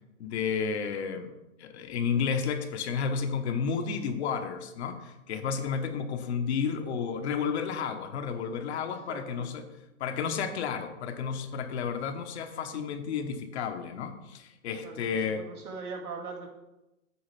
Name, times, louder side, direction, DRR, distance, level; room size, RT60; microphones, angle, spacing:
voice 1, 0.2-1.3 1.6-9.6 10.0-15.4, left 6 dB, 50° left, 7 dB, 1.1 m, -32 dB
voice 2, 9.1-9.5 14.8-16.5, right 4 dB, 90° right, -1 dB, 2.5 m, -41 dB
8.7 x 4.7 x 5.8 m, 0.96 s
hypercardioid pair, 140°, 43 cm